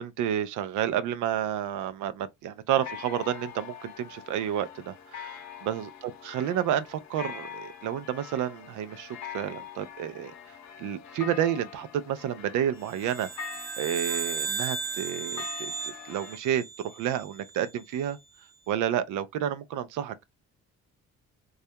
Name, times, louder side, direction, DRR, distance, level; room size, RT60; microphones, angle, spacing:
voice 1, 0.0-10.3 10.8-13.3 13.8-18.2 18.7-20.3, right 10 dB, 80° right, 0.5 m, -30 dB
sound 1, 2.7-16.4, left 8 dB, 65° left, 0.6 m, -44 dB
sound 2, 12.9-17.4, right 4 dB, 35° right, 0.9 m, -35 dB
2.3 x 2.0 x 2.7 m
cardioid pair, 90°, 30 cm